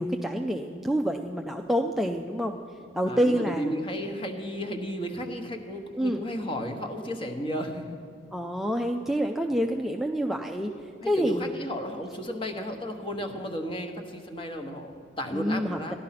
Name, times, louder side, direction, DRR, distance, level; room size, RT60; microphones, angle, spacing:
voice 1, 0.0-2.6 3.0-3.7 6.0-6.2 8.3-10.7 11.1-11.4 15.3-15.9, equal, ahead, 2 dB, 0.4 m, -27 dB
voice 2, 3.1-8.0 9.5-9.6 11.0-16.0, equal, 30° left, 5 dB, 1.1 m, -34 dB
14.0 x 11.5 x 5.8 m, 2.4 s
head